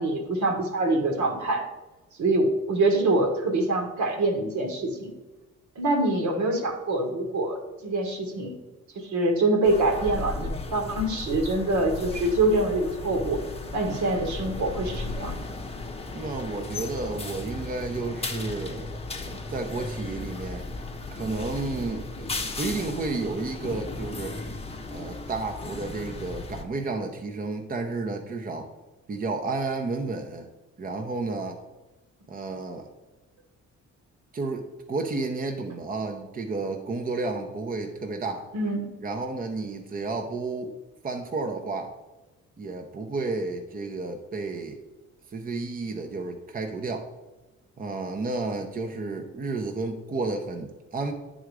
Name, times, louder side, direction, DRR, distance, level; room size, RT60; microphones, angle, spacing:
voice 1, 0.0-1.6 2.2-5.1 5.8-8.6 8.9-13.4 13.7-15.4 38.5-38.9, right 2 dB, 70° right, 4 dB, 1.4 m, -25 dB
sound 1, 9.6-26.6, left 2 dB, 20° left, 0.7 m, -35 dB
voice 2, 16.1-18.9 19.2-20.6 21.1-24.4 24.9-28.7 29.1-30.5 30.8-31.6 32.3-32.9 34.3-38.5 39.0-40.7 41.0-41.9 42.6-44.8 45.3-47.1 47.8-51.1, right 3 dB, 30° right, 4 dB, 0.7 m, -32 dB
9.0 x 3.8 x 4.7 m, 1.1 s
cardioid pair, 90°, 30 cm